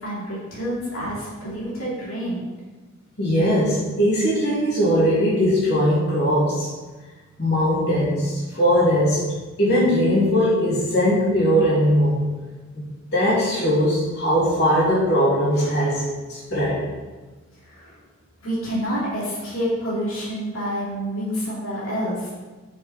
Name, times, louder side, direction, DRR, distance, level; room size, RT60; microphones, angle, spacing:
voice 1, 0.0-2.4 17.6-18.0 18.4-22.3, equal, 75° left, -7 dB, 2.8 m, -28 dB
voice 2, 3.2-6.7 7.4-9.2 9.6-12.2 12.7-12.8 13.1-16.8, equal, 50° left, -9 dB, 2.8 m, -20 dB
6.4 x 5.6 x 5.2 m, 1.2 s
head